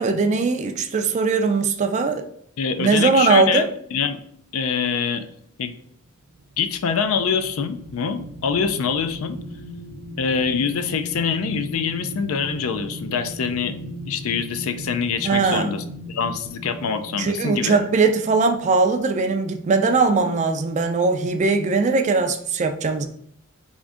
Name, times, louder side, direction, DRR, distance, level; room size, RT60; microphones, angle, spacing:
voice 1, 0.0-2.2 2.8-3.7 15.2-15.8 17.2-23.1, right 4 dB, 30° right, 6 dB, 0.3 m, -20 dB
voice 2, 2.6-3.7 3.9-4.2 4.5-5.3 5.6-5.7 6.6-9.4 10.2-17.8, left 6 dB, 65° left, 10 dB, 0.4 m, -25 dB
sound 1, 6.2-19.1 19.6-19.8, equal, 70° right, 0.6 m, -38 dB
3.5 x 2.6 x 3.6 m, 0.66 s
head